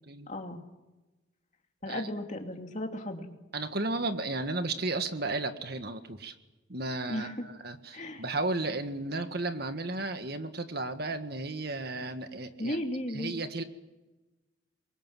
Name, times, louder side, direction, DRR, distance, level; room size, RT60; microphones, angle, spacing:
voice 1, 0.3-0.6 1.8-3.3 7.1-7.4 7.9-8.2 12.6-13.3, left 1 dB, 35° left, 3 dB, 2.7 m, -35 dB
voice 2, 3.5-6.3 6.7-12.8 13.1-13.6, right 2 dB, 50° right, 8 dB, 1.7 m, -34 dB
27.0 x 23.0 x 7.6 m, 1.1 s
head